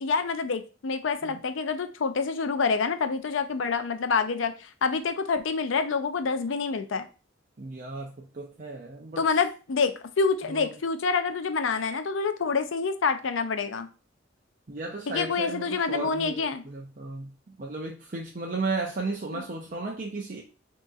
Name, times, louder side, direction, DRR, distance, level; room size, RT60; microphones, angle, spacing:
voice 1, 0.0-7.1 9.2-13.9 15.1-16.6 19.3-19.4, left 5 dB, 85° left, 9 dB, 0.5 m, -27 dB
voice 2, 7.6-9.3 10.5-10.7 14.7-20.4, right 3 dB, 45° right, 0 dB, 0.6 m, -35 dB
6.4 x 2.9 x 2.4 m, 0.34 s
head